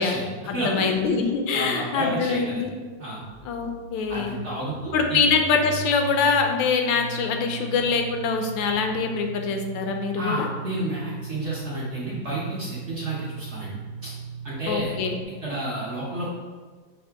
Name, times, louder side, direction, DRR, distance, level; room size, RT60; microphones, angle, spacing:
voice 1, 0.0-2.7 3.4-4.3 4.9-10.5 14.7-15.2, left 5 dB, 80° left, 4 dB, 1.3 m, -24 dB
voice 2, 0.5-0.9 1.5-2.6 3.0-3.2 4.1-5.2 10.2-13.7 14.0-14.1 14.4-14.9 15.4-16.3, right 1 dB, 55° right, -7 dB, 0.8 m, -30 dB
sound 1, 3.3-15.2, right 5 dB, 80° right, 0.6 m, -38 dB
5.6 x 2.7 x 3.4 m, 1.5 s
omnidirectional pair, 2.0 m